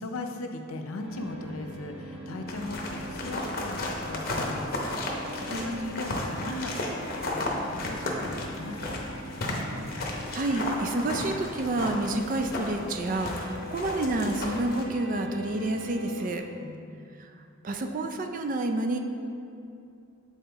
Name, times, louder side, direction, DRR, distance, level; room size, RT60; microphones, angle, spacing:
voice 1, 0.0-9.3 16.6-17.2, left 2 dB, 85° left, 5 dB, 0.5 m, -39 dB
sound 1, 1.0-16.4, equal, 65° right, 1.4 m, -42 dB
sound 2, 2.5-14.8, left 1 dB, 45° left, 0.7 m, -34 dB
voice 2, 5.5-5.9 9.9-16.5 17.2-17.3 17.6-19.0, right 2 dB, 40° right, 5 dB, 0.3 m, -29 dB
7.6 x 4.2 x 3.4 m, 2.5 s
head